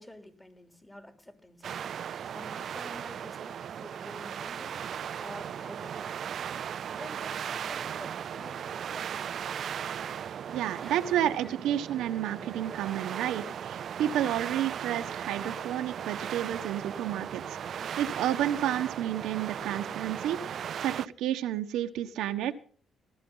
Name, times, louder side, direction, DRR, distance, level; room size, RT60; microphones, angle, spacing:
voice 1, 0.0-1.8 2.2-4.8 5.2-6.4 6.9-9.5 10.8-11.0 11.4-11.5, left 1 dB, 15° left, 3.2 m, -49 dB
sound 1, 1.6-21.1, right 8 dB, 60° right, 0.5 m, -37 dB
voice 2, 10.5-22.5, right 11 dB, 85° right, 1.2 m, -31 dB
19.0 x 13.0 x 4.0 m
cardioid pair, 90°, 0 cm